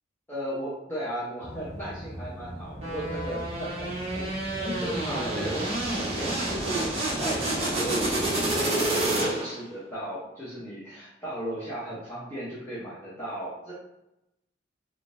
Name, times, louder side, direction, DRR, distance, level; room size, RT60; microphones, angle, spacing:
voice 1, 0.3-4.3 4.6-5.7 6.0-6.9 7.2-13.7, right 1 dB, 10° left, -10 dB, 0.7 m, -36 dB
sound 1, 1.4-8.6, equal, 50° left, 0.9 m, -41 dB
sound 2, 2.8-9.7, right 1 dB, 30° right, 0.7 m, -29 dB
3.6 x 2.4 x 2.5 m, 0.88 s
head